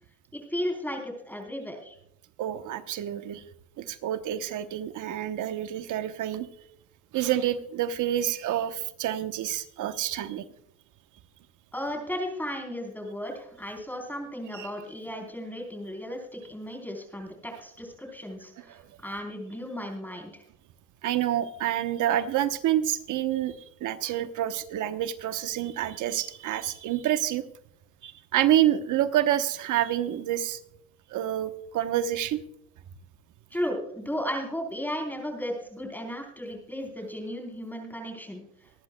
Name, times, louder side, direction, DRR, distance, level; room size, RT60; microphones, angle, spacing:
voice 1, 0.3-2.0 11.7-20.4 33.5-38.4, equal, 5° left, 2 dB, 3.7 m, -35 dB
voice 2, 2.4-3.4 3.8-6.5 7.1-10.4 14.5-14.7 18.6-18.7 21.0-27.4 28.0-30.6 31.1-32.4, right 12 dB, 80° right, 10 dB, 1.0 m, -28 dB
24.5 x 10.5 x 2.2 m, 0.72 s
cardioid pair, 90°, 30 cm